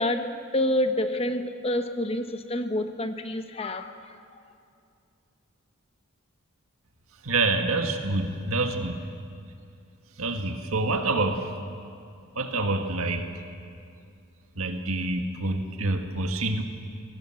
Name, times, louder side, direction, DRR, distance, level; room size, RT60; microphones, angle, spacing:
voice 1, 0.0-4.0, left 1 dB, 30° left, 8 dB, 0.9 m, -28 dB
voice 2, 7.2-9.0 10.2-11.5 12.4-13.3 14.6-16.6, right 2 dB, 85° right, 5 dB, 1.8 m, -27 dB
18.5 x 18.5 x 7.7 m, 2.5 s
head